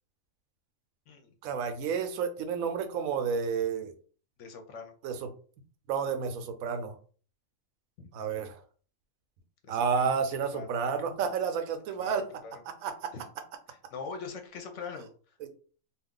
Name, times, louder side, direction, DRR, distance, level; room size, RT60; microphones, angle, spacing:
voice 1, 1.4-3.9 5.0-5.3 5.9-7.0 8.1-8.6 9.7-12.3 12.8-13.1 15.4-15.5, right 6 dB, 85° right, 7 dB, 1.0 m, -30 dB
voice 2, 4.4-4.9 8.0-8.1 9.6-10.1 10.5-10.8 12.0-12.5 13.1-13.2 13.7-15.5, left 5 dB, 65° left, 5 dB, 0.9 m, -43 dB
2.4 x 2.3 x 3.6 m, 0.41 s
omnidirectional pair, 1.4 m